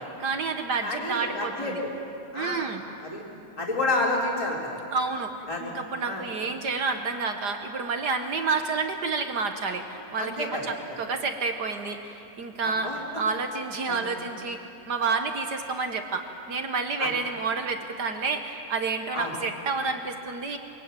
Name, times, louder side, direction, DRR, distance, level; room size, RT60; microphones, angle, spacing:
voice 1, 0.0-1.8 2.3-2.8 4.9-5.3 5.6-20.6, right 4 dB, 65° right, 6 dB, 1.0 m, -29 dB
voice 2, 0.8-1.8 2.3-3.2 3.6-4.8 5.5-5.7 6.0-6.2 10.2-10.7 12.6-13.0 13.9-14.0 17.0-17.1 19.1-19.3, left 2 dB, 10° left, -2 dB, 3.0 m, -30 dB
23.5 x 23.0 x 9.1 m, 2.9 s
omnidirectional pair, 3.5 m